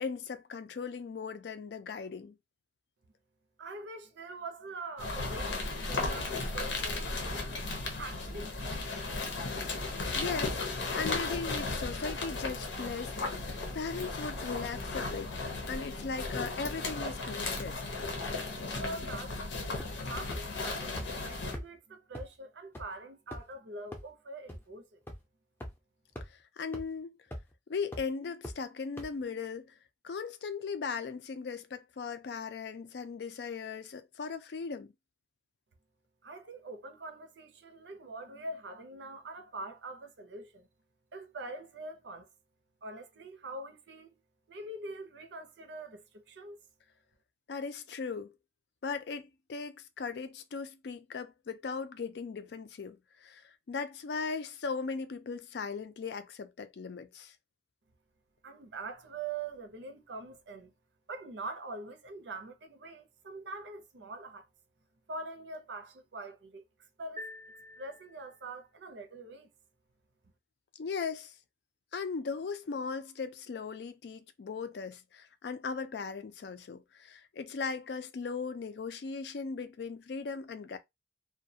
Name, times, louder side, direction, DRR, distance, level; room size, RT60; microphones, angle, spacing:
voice 1, 0.0-2.4 10.1-10.6 10.9-15.3 15.7-17.8 26.3-27.1 27.7-29.7 30.0-34.9 47.5-48.3 48.8-49.2 49.5-57.3 70.8-71.3 71.9-80.8, left 5 dB, 65° left, 0.4 m, -38 dB
voice 2, 3.6-9.0 18.2-18.4 18.7-25.0 36.2-40.7 41.1-42.3 42.8-44.2 44.5-46.6 58.4-60.7 61.1-64.5 65.1-67.3 67.8-69.5, right 2 dB, 80° right, 0.6 m, -44 dB
sound 1, 5.0-21.6, left 3 dB, 90° left, 0.7 m, -35 dB
sound 2, 19.8-20.0 20.3-20.4 21.0-21.1 21.5-21.6 22.1-22.2 22.7-22.8 23.3-23.5 23.9-24.0 24.5-24.6 25.1-25.2 25.6-25.7 26.1-26.3 26.7-26.8 27.3-27.5 27.9-28.0 28.4-28.5 29.0-29.1, equal, 15° left, 0.5 m, -40 dB
sound 3, 67.2-68.6, left 1 dB, 35° right, 0.5 m, -47 dB
2.3 x 2.1 x 2.6 m
head